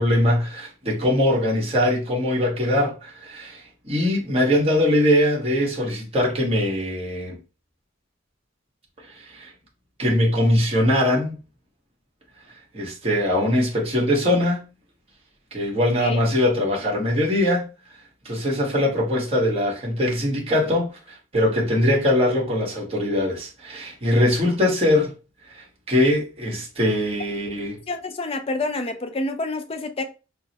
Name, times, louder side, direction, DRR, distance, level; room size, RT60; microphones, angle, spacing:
voice 1, 0.0-7.4 9.2-9.5 10.0-11.4 12.7-14.7 15.5-17.7 18.2-25.1 25.5-27.8, left 1 dB, 30° right, 1.3 m, -22 dB
voice 2, 27.9-30.0, left 2 dB, 30° left, 0.5 m, -28 dB
5.8 x 2.1 x 2.8 m
head